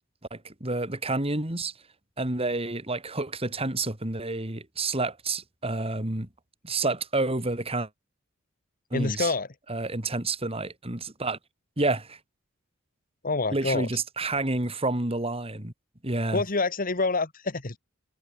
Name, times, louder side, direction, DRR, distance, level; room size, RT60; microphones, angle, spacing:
voice 1, 0.3-1.7 2.2-6.3 6.6-7.9 8.9-9.3 9.7-11.4 11.8-12.2 13.5-15.7 16.0-16.4, right 2 dB, 30° right, 2.9 m, -29 dB
voice 2, 8.9-9.5 13.2-13.9 16.3-17.8, left 3 dB, 45° left, 1.7 m, -27 dB
head